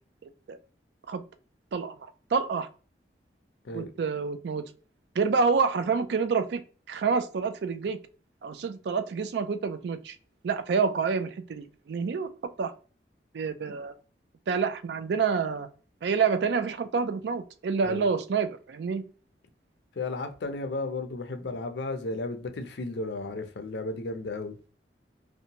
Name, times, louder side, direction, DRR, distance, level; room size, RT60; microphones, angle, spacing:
voice 1, 2.3-2.7 3.7-4.7 5.2-6.6 6.9-8.0 8.4-10.2 10.4-12.3 12.6-12.7 13.3-13.9 14.5-15.7 16.0-19.0, right 5 dB, 75° right, 0.4 m, -27 dB
voice 2, 20.0-24.6, left 2 dB, 75° left, 0.5 m, -34 dB
2.7 x 2.2 x 2.7 m
head